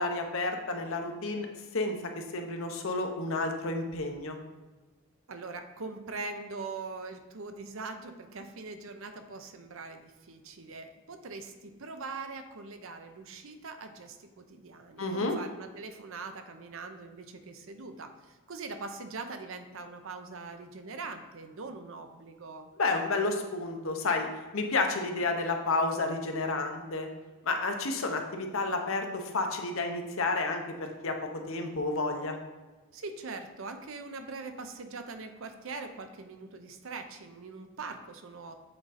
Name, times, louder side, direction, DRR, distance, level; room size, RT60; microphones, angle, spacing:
voice 1, 0.0-1.5 1.7-4.4 15.0-15.3 22.8-24.3 24.5-27.1 27.4-32.4, left 3 dB, 65° left, 4 dB, 0.8 m, -31 dB
voice 2, 5.3-22.7 32.9-38.6, right 3 dB, 65° right, 7 dB, 0.6 m, -42 dB
7.8 x 3.7 x 4.2 m, 1.3 s
head